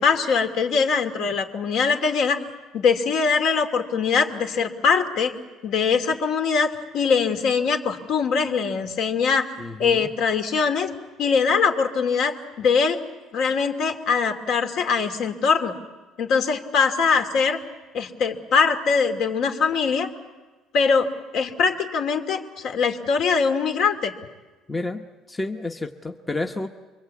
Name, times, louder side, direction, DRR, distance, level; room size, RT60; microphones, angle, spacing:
voice 1, 0.0-2.4 2.7-5.3 5.6-9.5 9.8-10.9 11.2-13.0 13.3-15.7 16.2-17.6 17.9-20.1 20.7-21.1 21.3-24.1, left 5 dB, 55° left, 6 dB, 2.6 m, -22 dB
voice 2, 9.6-10.1 24.7-26.7, left 2 dB, 10° left, 4 dB, 1.0 m, -30 dB
30.0 x 23.5 x 8.5 m, 1.2 s
cardioid pair, 160°, 0 cm